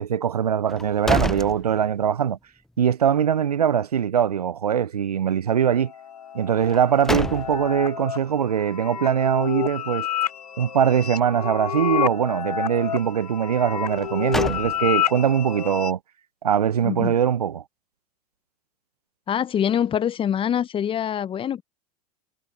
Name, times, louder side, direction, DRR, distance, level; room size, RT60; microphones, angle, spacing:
voice 1, 0.0-2.4 2.8-5.9 6.3-10.1 10.6-16.0 16.4-17.6, right 8 dB, 80° right, 0.9 m, -22 dB
sound 1, 0.7-2.3 2.7-2.8 6.6-7.9 13.9-15.2, left 1 dB, ahead, 0.4 m, -29 dB
sound 2, 5.6-15.9, left 10 dB, 80° left, 1.6 m, -29 dB
voice 2, 16.8-17.2 19.3-21.6, left 9 dB, 25° left, 0.9 m, -24 dB
figure-of-eight pair, 85°, 19 cm